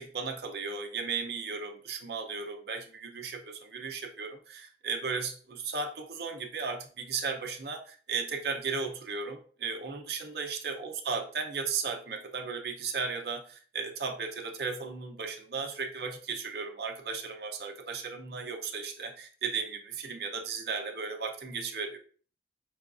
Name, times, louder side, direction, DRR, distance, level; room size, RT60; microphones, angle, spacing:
voice 1, 0.0-22.0, right 5 dB, 65° right, 4 dB, 0.6 m, -35 dB
5.6 x 2.3 x 2.5 m, 0.42 s
head